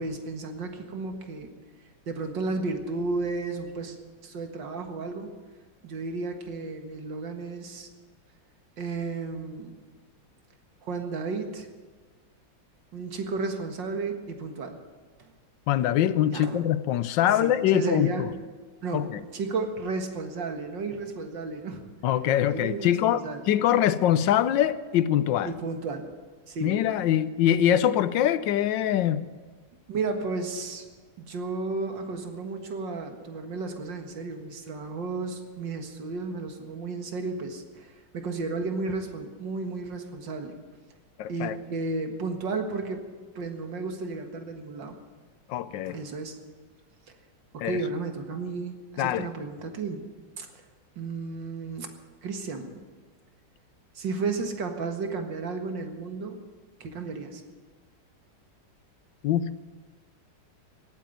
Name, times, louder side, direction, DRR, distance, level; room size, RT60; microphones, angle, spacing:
voice 1, 0.0-1.5 2.1-4.0 4.2-5.3 5.8-7.9 8.8-9.7 10.8-11.7 12.9-14.7 15.2-15.3 16.3-16.6 17.4-18.3 18.8-21.8 22.5-23.5 25.4-26.1 26.5-26.8 29.9-30.9 31.2-40.5 41.3-43.0 43.3-45.0 45.8-46.4 47.1-47.2 47.6-50.1 50.4-50.6 51.0-51.9 52.2-52.7 54.0-56.4 56.8-57.4, right 3 dB, 85° right, 5 dB, 2.4 m, -33 dB
voice 2, 15.7-18.1 18.9-19.2 22.0-23.2 23.5-25.5 26.6-29.2 41.2-41.6 45.5-46.0 47.6-47.8 49.0-49.3 59.2-59.5, left 11 dB, 90° left, 15 dB, 1.4 m, -23 dB
17.0 x 9.2 x 9.2 m, 1.4 s
omnidirectional pair, 1.9 m